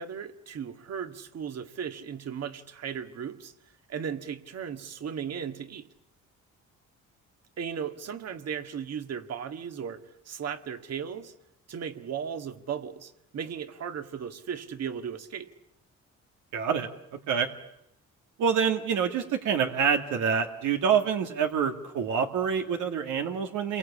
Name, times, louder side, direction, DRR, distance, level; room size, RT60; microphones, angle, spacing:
voice 1, 0.0-3.5 3.9-5.9 7.6-11.3 11.7-15.5, right 7 dB, 55° right, 8 dB, 2.0 m, -36 dB
voice 2, 16.5-16.9 17.3-17.5 18.4-23.8, right 7 dB, 85° right, 4 dB, 2.2 m, -26 dB
29.5 x 23.0 x 8.6 m, 0.83 s
cardioid pair, 90°, 30 cm